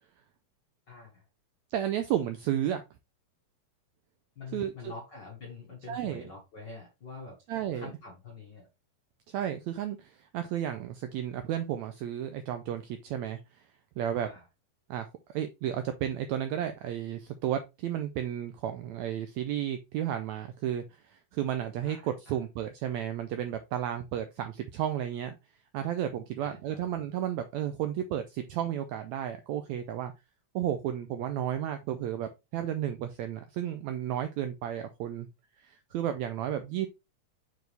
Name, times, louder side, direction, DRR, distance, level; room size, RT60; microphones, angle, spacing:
voice 1, 0.9-1.2 4.3-7.4 7.7-8.7 14.2-14.4 21.8-22.3 26.4-26.8, left 4 dB, 50° left, 1.3 m, -46 dB
voice 2, 1.7-2.8 4.5-4.9 5.9-6.3 7.5-7.9 9.3-13.7 14.0-14.3 14.9-25.4 25.7-30.1 30.5-35.3 35.6-36.9, right 10 dB, 85° right, 1.6 m, -33 dB
6.2 x 4.6 x 3.3 m
omnidirectional pair, 3.8 m